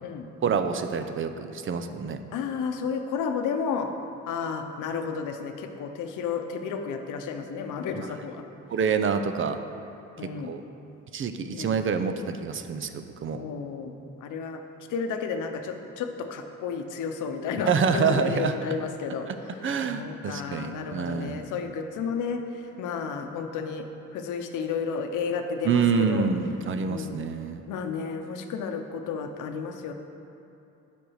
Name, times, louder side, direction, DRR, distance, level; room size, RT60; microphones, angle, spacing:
voice 1, 0.4-2.2 7.9-8.1 8.7-9.6 10.2-10.6 11.1-13.4 17.6-18.5 19.3-19.4 19.6-21.4 25.6-27.6, right 6 dB, 45° right, 8 dB, 0.6 m, -27 dB
voice 2, 2.3-3.9 4.3-8.4 10.2-10.5 11.5-11.7 13.3-13.9 14.2-14.6 14.9-19.3 19.9-22.4 22.8-23.8 24.1-26.3 26.8-27.2 27.7-29.9, left 6 dB, 85° left, 5 dB, 0.8 m, -32 dB
7.7 x 5.3 x 6.4 m, 2.8 s
cardioid pair, 90°, 30 cm